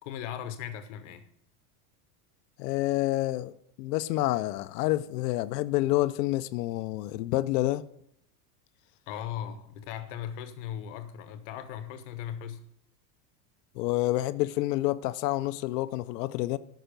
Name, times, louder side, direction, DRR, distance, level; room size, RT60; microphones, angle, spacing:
voice 1, 0.0-1.3 9.1-12.6, left 9 dB, 50° left, 1.1 m, -38 dB
voice 2, 2.6-7.8 13.8-16.6, left 17 dB, 85° left, 0.6 m, -28 dB
13.5 x 5.9 x 5.2 m
supercardioid pair, 180°, 47 cm